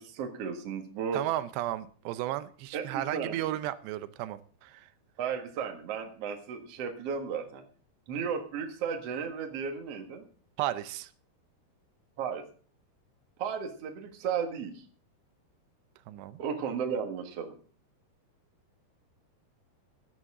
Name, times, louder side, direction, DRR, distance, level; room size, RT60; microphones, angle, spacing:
voice 1, 0.0-1.2 2.7-3.4 5.2-7.6 8.1-10.2 12.2-12.4 13.4-14.8 16.4-17.6, right 6 dB, 50° right, 2.0 m, -34 dB
voice 2, 1.1-4.9 10.6-11.1 16.1-16.4, right 14 dB, 85° right, 2.9 m, -34 dB
16.5 x 11.0 x 3.7 m
omnidirectional pair, 4.8 m